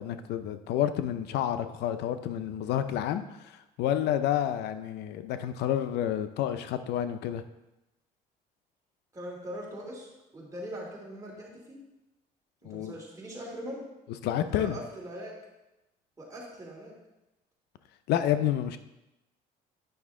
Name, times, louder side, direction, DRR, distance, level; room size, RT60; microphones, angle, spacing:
voice 1, 0.0-7.4 12.6-12.9 14.2-14.8 18.1-18.8, left 11 dB, 80° left, 10 dB, 0.5 m, -29 dB
voice 2, 9.1-11.8 12.6-13.8 14.5-15.4 16.2-17.0, equal, 20° right, -3 dB, 2.7 m, -41 dB
9.4 x 5.8 x 3.7 m, 0.95 s
cardioid pair, 110°, 17 cm